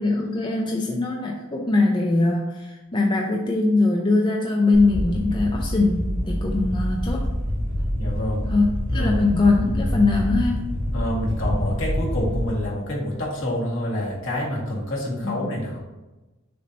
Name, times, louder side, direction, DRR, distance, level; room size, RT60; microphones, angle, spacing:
voice 1, 0.0-7.2 8.4-8.7 8.9-10.7 15.2-15.3, left 3 dB, 20° left, 0 dB, 0.5 m, -21 dB
sound 1, 4.7-12.5, equal, 85° right, 2.0 m, -26 dB
voice 2, 7.9-8.5 8.9-9.3 10.9-15.8, left 1 dB, 60° left, -4 dB, 1.8 m, -27 dB
6.7 x 2.7 x 5.2 m, 1.1 s
head